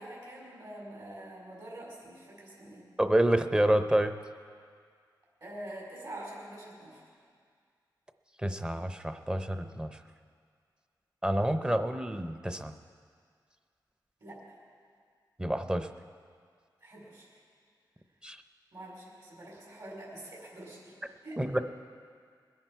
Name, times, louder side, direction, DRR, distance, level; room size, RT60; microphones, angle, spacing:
voice 1, 0.0-2.9 5.4-7.0 14.2-14.4 16.8-17.3 18.7-20.9 21.2-21.6, right 1 dB, 60° right, -5 dB, 4.3 m, -45 dB
voice 2, 3.0-4.1 8.4-9.9 11.2-12.7 15.4-15.9 18.2-18.4 21.4-21.6, right 1 dB, 10° right, 9 dB, 0.7 m, -28 dB
21.0 x 10.5 x 4.6 m, 2.1 s
wide cardioid pair, 95°, 8 cm